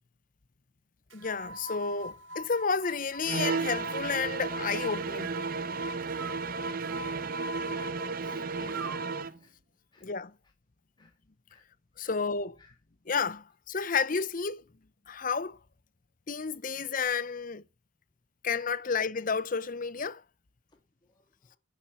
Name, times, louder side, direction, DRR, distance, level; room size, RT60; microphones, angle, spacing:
voice 1, 1.1-5.3 10.0-10.3 12.0-12.6 13.1-14.6 15.1-15.6 16.3-17.6 18.4-20.2, left 5 dB, 45° left, 0.7 m, -31 dB
sound 1, 1.1-9.3, right 1 dB, 75° right, 1.6 m, -41 dB
sound 2, 3.2-9.4, right 4 dB, 45° right, 0.7 m, -34 dB
voice 2, 6.9-7.9 8.3-9.0 9.4-9.6 9.9-10.1 11.0-11.1 11.5-11.7 12.0-12.2 12.6-12.8 21.0-21.6, left 2 dB, 20° left, 1.8 m, -55 dB
10.5 x 7.1 x 6.9 m
head